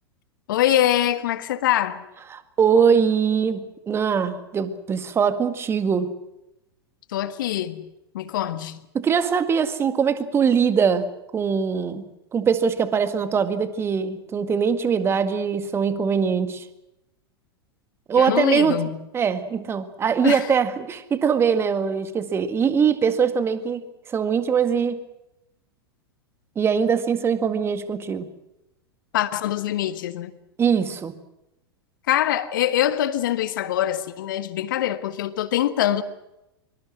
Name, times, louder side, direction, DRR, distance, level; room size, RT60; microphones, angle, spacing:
voice 1, 0.5-2.0 7.1-8.8 18.1-19.0 20.2-20.5 29.1-30.3 32.1-36.0, left 12 dB, 55° left, 12 dB, 1.6 m, -24 dB
voice 2, 2.3-3.6 3.9-6.1 8.9-16.7 18.1-18.8 19.1-23.8 24.1-25.0 26.6-28.3 30.6-31.1, right 6 dB, 20° right, 10 dB, 1.8 m, -22 dB
25.5 x 24.0 x 6.3 m, 0.90 s
figure-of-eight pair, 95°, 13 cm